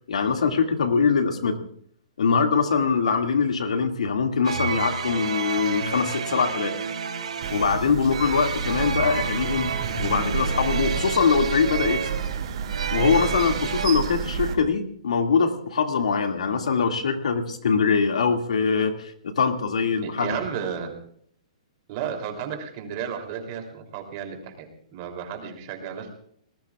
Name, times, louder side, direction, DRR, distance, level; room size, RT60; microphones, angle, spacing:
voice 1, 0.1-1.6 2.2-6.7 7.5-9.7 10.0-12.1 12.9-20.4, left 5 dB, 90° left, 4 dB, 2.3 m, -23 dB
sound 1, 4.4-13.9, right 6 dB, 90° right, 3.5 m, -30 dB
sound 2, 7.4-14.6, right 6 dB, 55° right, 2.4 m, -30 dB
voice 2, 20.0-21.0 21.9-26.1, right 8 dB, 35° right, 4 dB, 3.2 m, -33 dB
26.0 x 19.5 x 2.4 m, 0.62 s
hypercardioid pair, 165°, 4 cm